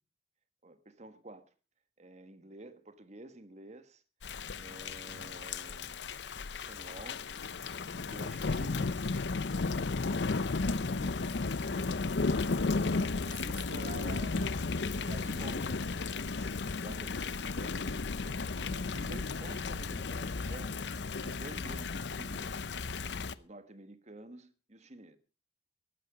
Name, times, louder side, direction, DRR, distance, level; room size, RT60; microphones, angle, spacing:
voice 1, 0.6-1.5 2.0-4.0 4.5-6.1 6.5-7.2 8.0-9.4 15.0-15.6 16.3-18.0 18.2-22.7 23.3-25.2, right 2 dB, 40° right, 1.5 m, -51 dB
Thunder / Rain, 4.2-23.3, left 3 dB, 80° left, 0.7 m, -34 dB
voice 2, 10.6-12.1 13.2-15.9, right 2 dB, 55° right, 2.1 m, -48 dB
14.5 x 12.0 x 5.0 m
head